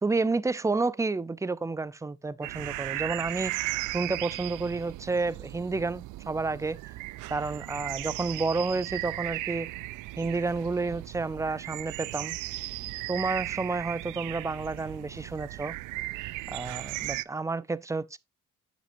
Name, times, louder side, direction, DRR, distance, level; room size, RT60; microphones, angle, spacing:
voice 1, 0.0-6.8 7.3-9.7 10.2-12.4 13.1-15.8 16.5-18.2, right 3 dB, 10° right, 0.4 m, -30 dB
sound 1, 2.4-17.2, right 18 dB, 90° right, 0.5 m, -36 dB
8.4 x 7.2 x 2.6 m
cardioid pair, 90°, 30 cm